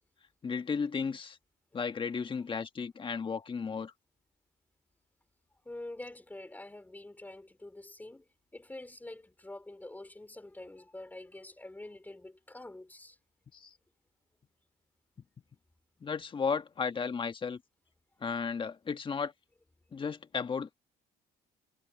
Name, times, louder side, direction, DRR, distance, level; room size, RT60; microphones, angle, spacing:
voice 1, 0.4-1.4 1.7-3.9 13.5-13.7 16.0-17.6 18.2-19.3 19.9-20.7, left 5 dB, 30° left, 1.6 m, -34 dB
voice 2, 5.6-8.3 8.5-13.2, left 2 dB, 10° left, 3.6 m, -46 dB
cardioid pair, 110°, 17 cm